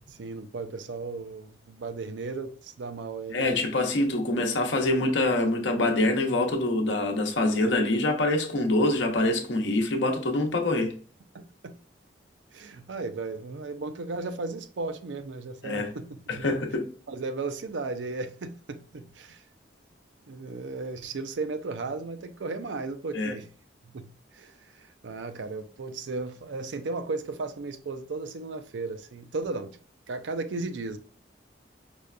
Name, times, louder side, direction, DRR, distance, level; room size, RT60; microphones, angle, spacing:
voice 1, 0.1-3.6 11.3-11.7 12.5-16.5 17.1-19.4 20.3-23.5 23.8-29.8 30.1-31.0, right 3 dB, 90° right, 0.5 m, -35 dB
voice 2, 3.3-10.9 15.6-15.9 16.3-16.8 23.1-23.3, left 2 dB, 85° left, 0.8 m, -25 dB
5.0 x 2.2 x 2.4 m
head